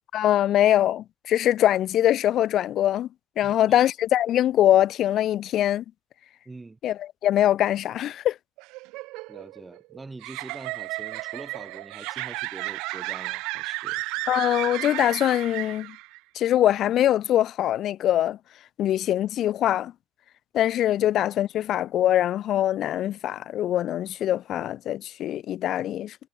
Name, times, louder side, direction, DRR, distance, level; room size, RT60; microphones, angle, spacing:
voice 1, 0.1-3.1 3.4-5.8 6.8-8.4 14.3-16.0 16.4-18.4 18.8-19.9 20.5-26.2, left 12 dB, 40° left, 0.5 m, -23 dB
voice 2, 3.4-3.8 6.4-6.8 9.3-14.0, right 3 dB, 10° right, 4.8 m, -44 dB
sound 1, 8.6-16.2, right 23 dB, 70° right, 0.5 m, -33 dB
cardioid pair, 165°, 0 cm